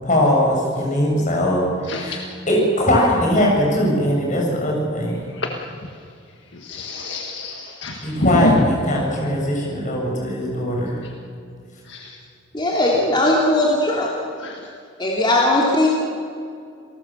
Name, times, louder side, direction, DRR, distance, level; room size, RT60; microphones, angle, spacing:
voice 1, 0.0-5.3 8.0-11.0, left 1 dB, 40° left, -1 dB, 7.0 m, -20 dB
voice 2, 6.7-8.6 14.4-14.5, left 1 dB, 65° left, 2 dB, 1.7 m, -24 dB
voice 3, 12.5-14.1 15.0-15.9, left 1 dB, 25° left, -3 dB, 2.9 m, -18 dB
28.0 x 18.5 x 7.5 m, 2.3 s
head